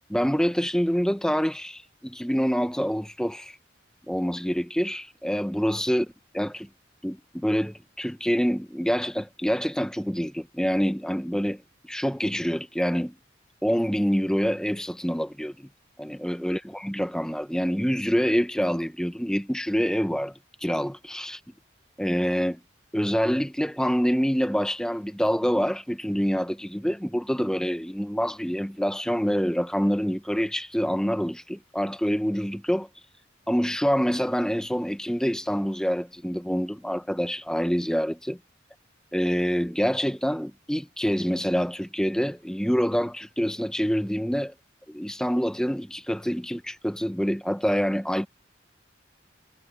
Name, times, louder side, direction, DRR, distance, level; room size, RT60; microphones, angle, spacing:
voice 1, 0.1-3.6 4.1-6.1 6.3-6.7 7.0-13.2 13.6-15.7 16.0-20.3 20.6-21.4 22.0-22.6 22.9-32.9 33.5-38.4 39.1-44.5 44.9-48.3, equal, 5° left, 1.2 m, -26 dB
head